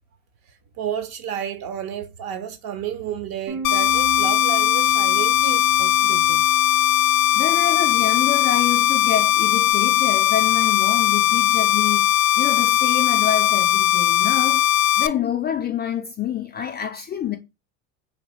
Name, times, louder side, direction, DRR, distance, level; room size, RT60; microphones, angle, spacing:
voice 1, 0.8-6.4, right 9 dB, 50° right, 0.9 m, -31 dB
Bass guitar, 3.5-9.7, right 4 dB, 80° right, 1.9 m, -37 dB
sound 1, 3.6-15.1, left 12 dB, 50° left, 0.7 m, -19 dB
voice 2, 7.3-14.7 15.0-17.4, left 9 dB, 25° left, 0.3 m, -27 dB
3.3 x 2.7 x 4.0 m
hypercardioid pair, 80°, 46 cm